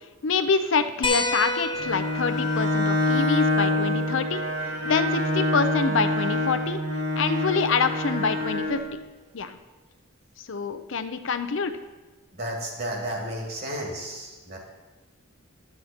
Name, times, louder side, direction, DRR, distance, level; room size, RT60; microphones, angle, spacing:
voice 1, 0.2-4.4 4.8-6.8 7.2-8.8 9.3-9.6 10.4-11.7, left 5 dB, 65° left, 9 dB, 0.5 m, -26 dB
sound 1, 1.0-6.1 7.6-7.7 9.4-9.5, left 2 dB, 25° left, 0.9 m, -33 dB
Bowed string instrument, 1.8-8.8, left 1 dB, 85° right, 2.6 m, -26 dB
voice 2, 12.3-14.6, right 1 dB, 45° right, 0 dB, 2.1 m, -32 dB
11.0 x 7.9 x 4.3 m, 1.2 s
head